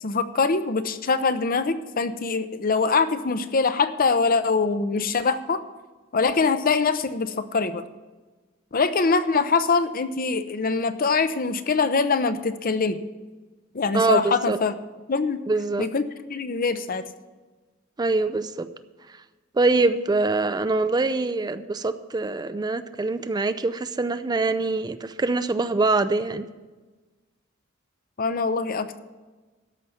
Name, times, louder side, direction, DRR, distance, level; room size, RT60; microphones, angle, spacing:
voice 1, 0.0-5.6 6.1-7.8 8.7-13.0 13.7-14.8 15.1-15.4 15.8-17.0 28.2-29.0, left 4 dB, 45° left, 11 dB, 0.7 m, -23 dB
voice 2, 13.9-14.6 15.5-15.9 18.0-18.7 19.5-26.5, right 3 dB, 20° right, 11 dB, 0.4 m, -24 dB
13.5 x 5.6 x 7.9 m, 1.3 s
head